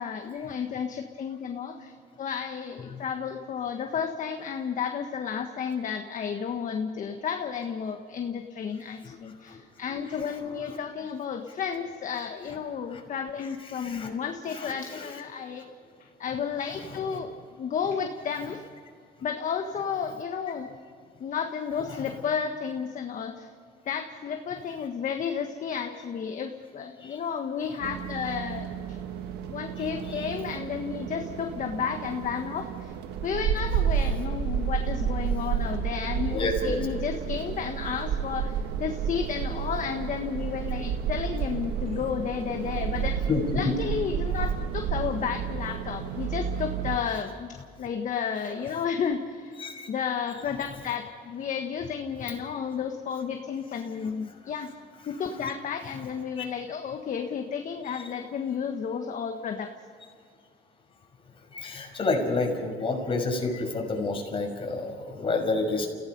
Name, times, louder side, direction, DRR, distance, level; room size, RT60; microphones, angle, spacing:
voice 1, 0.0-15.6 16.0-18.6 19.2-20.7 21.2-23.5 23.9-28.7 29.5-32.9 33.2-43.2 43.5-49.6 49.9-54.7 55.1-59.7, left 7 dB, 50° left, 4 dB, 1.5 m, -32 dB
voice 2, 13.7-14.1 14.6-15.0 17.1-17.2 21.9-22.0 27.0-27.2 30.1-30.3 36.3-36.9 43.3-43.8 49.6-49.9 56.4-56.5 61.5-65.9, left 3 dB, 30° left, 1 dB, 6.0 m, -29 dB
sound 1, 27.8-47.0, right 8 dB, 85° right, 1.5 m, -31 dB
29.5 x 17.0 x 5.5 m, 2.2 s
cardioid pair, 110°, 17 cm